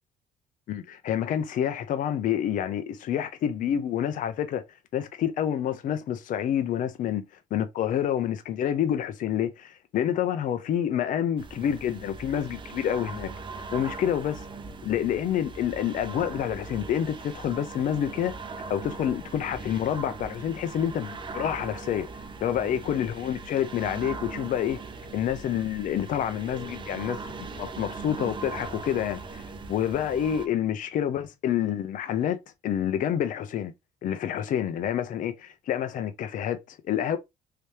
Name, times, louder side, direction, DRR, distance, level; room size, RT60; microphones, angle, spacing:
voice 1, 0.7-4.6 4.9-7.2 7.5-13.3 13.7-14.4 14.8-18.3 18.7-22.1 22.4-24.8 25.1-29.4 29.7-33.7 34.0-37.2, left 10 dB, 60° left, 0.5 m, -28 dB
sound 1, 11.4-30.5, right 4 dB, 30° right, 0.6 m, -40 dB
3.3 x 2.8 x 3.2 m
cardioid pair, 95°, 16 cm